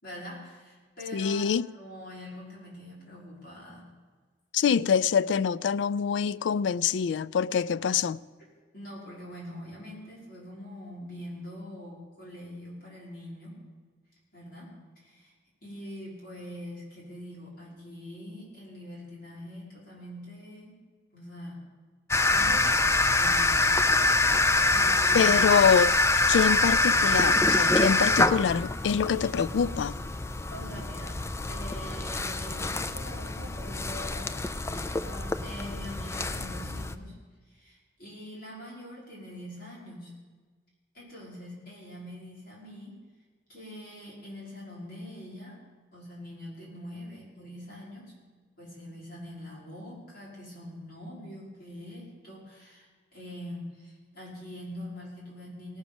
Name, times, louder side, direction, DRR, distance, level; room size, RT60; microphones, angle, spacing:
voice 1, 0.0-3.9 4.6-5.0 8.7-13.6 14.3-15.3 15.6-20.8 21.1-21.6 22.3-24.4 24.7-25.5 30.5-31.2 31.5-37.2 37.5-40.1 40.9-43.0 43.5-45.6 45.9-48.1 48.6-55.8, left 1 dB, 55° left, 5.3 m, -43 dB
voice 2, 1.1-1.7 4.5-8.2 25.1-25.9 26.3-30.0, left 7 dB, 90° left, 0.3 m, -25 dB
sound 1, 22.1-37.0, left 2 dB, 15° left, 0.4 m, -25 dB
18.5 x 6.2 x 7.0 m
head